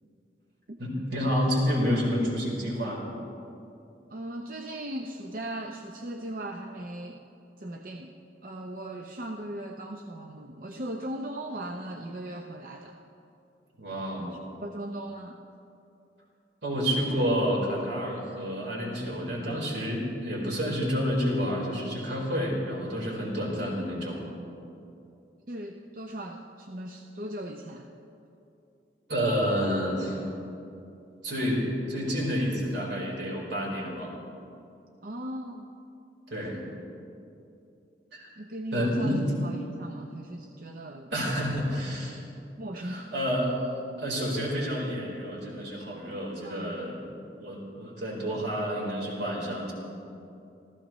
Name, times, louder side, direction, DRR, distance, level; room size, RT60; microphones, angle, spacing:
voice 1, 0.8-3.0 13.8-14.3 16.6-24.2 29.1-30.3 31.2-34.2 36.3-36.7 38.1-38.3 38.7-39.3 41.1-42.2 42.8-43.6 44.0-47.0 47.4-49.7, equal, 80° right, -3 dB, 4.2 m, -29 dB
voice 2, 4.1-7.3 7.6-13.0 14.2-14.3 14.6-15.4 25.5-27.9 35.0-35.7 38.4-41.6 42.6-43.1 46.4-46.8, right 1 dB, 50° right, 3 dB, 0.6 m, -38 dB
27.0 x 14.5 x 3.1 m, 2.7 s
head